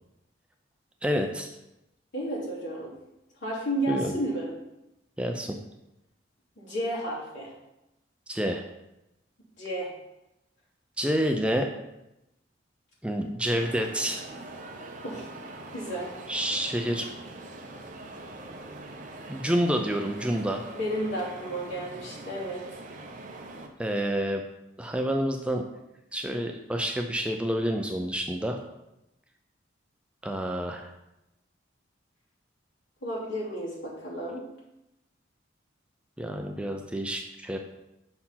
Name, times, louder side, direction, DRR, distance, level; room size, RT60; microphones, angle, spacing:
voice 1, 1.0-1.5 3.9-4.1 5.2-5.6 8.3-8.6 11.0-11.7 13.0-14.2 16.3-17.1 19.3-20.7 23.8-24.4 24.8-25.6 26.1-28.6 30.2-30.9 36.2-37.6, equal, 5° right, 3 dB, 0.4 m, -28 dB
voice 2, 2.1-2.9 3.4-4.5 6.6-7.5 9.6-9.9 15.0-15.3 15.7-16.1 20.7-22.6 33.0-34.4, right 1 dB, 70° left, -7 dB, 2.7 m, -32 dB
sound 1, 13.6-23.7, right 2 dB, 40° right, 0.7 m, -43 dB
5.7 x 4.4 x 5.6 m, 0.92 s
head